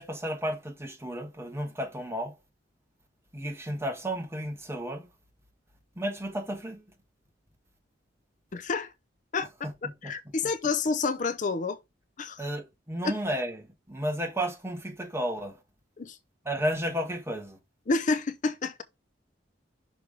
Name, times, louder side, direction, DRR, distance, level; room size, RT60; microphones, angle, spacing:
voice 1, 0.0-2.4 3.3-5.1 6.0-6.8 9.6-10.1 12.4-15.6 16.4-17.6, equal, 15° right, 1.4 m, -33 dB
voice 2, 8.5-8.9 9.3-9.5 10.0-11.8 12.2-12.5 13.0-13.1 16.0-16.2 17.9-18.8, left 4 dB, 45° left, 0.6 m, -29 dB
6.1 x 3.4 x 4.8 m
head